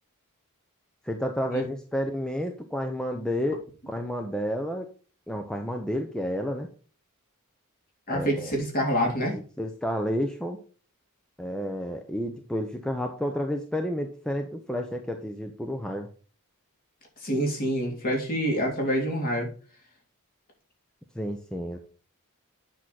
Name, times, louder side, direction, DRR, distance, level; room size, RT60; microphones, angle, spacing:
voice 1, 1.0-4.9 5.3-6.7 8.1-8.5 9.3-10.6 11.4-16.1 21.1-21.8, equal, 5° left, 4 dB, 0.8 m, -31 dB
voice 2, 8.1-9.4 17.2-19.5, equal, 40° left, 1 dB, 3.2 m, -26 dB
8.9 x 6.2 x 4.2 m, 0.38 s
head